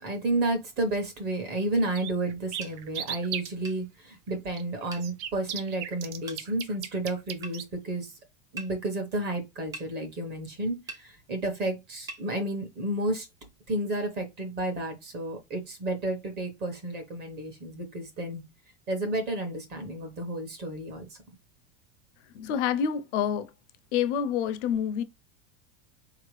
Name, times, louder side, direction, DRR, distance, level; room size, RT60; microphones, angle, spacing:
voice 1, 0.0-8.1 8.5-13.3 13.7-18.4 18.9-21.1, right 1 dB, 30° right, 0.9 m, -31 dB
sound 1, 1.5-1.6 1.9-3.5 4.5-7.6, right 10 dB, 75° right, 0.7 m, -36 dB
sound 2, 2.6-2.8 3.6-3.8 4.9-5.1 6.3-6.4 7.4-7.6 8.6-8.7 9.7-9.9 10.9-11.0 12.1-12.2, right 3 dB, 10° right, 0.3 m, -41 dB
voice 2, 22.3-23.5 23.9-25.0, left 8 dB, 80° left, 0.7 m, -27 dB
4.3 x 2.8 x 3.1 m
supercardioid pair, 160°, 35 cm